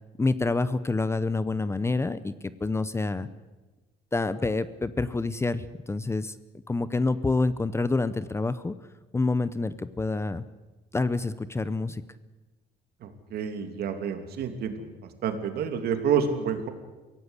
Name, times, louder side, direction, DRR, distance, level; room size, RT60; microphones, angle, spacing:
voice 1, 0.2-2.3 2.6-3.3 4.1-6.4 6.7-8.7 9.1-10.4 10.9-12.0, left 3 dB, 15° left, 15 dB, 0.7 m, -27 dB
voice 2, 13.0-14.7 15.2-16.7, right 7 dB, 70° right, 6 dB, 2.8 m, -28 dB
24.0 x 16.5 x 8.2 m, 1.2 s
cardioid pair, 110°, 17 cm